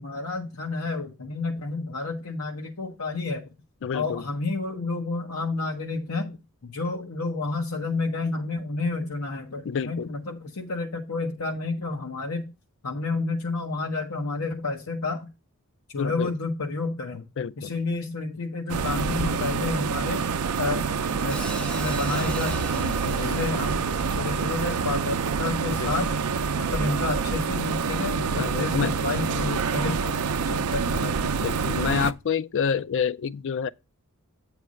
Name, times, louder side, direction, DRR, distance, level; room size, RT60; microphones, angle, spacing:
voice 1, 0.0-3.5 3.9-6.4 6.6-12.5 12.8-15.3 15.9-17.2 17.6-20.2 20.6-20.9 21.2-21.5 21.8-26.1 26.6-30.0 30.4-31.8, left 3 dB, 85° left, 0.9 m, -30 dB
voice 2, 3.8-4.2 9.6-10.1 16.0-16.3 17.4-17.7 23.1-23.4 25.7-25.9 28.4-29.4 29.8-30.2 31.4-33.7, left 7 dB, 60° left, 0.4 m, -28 dB
sound 1, 18.7-32.1, right 5 dB, 80° right, 0.5 m, -27 dB
Hi-hat, 21.3-25.6, equal, 5° left, 0.5 m, -41 dB
8.3 x 3.3 x 6.3 m
head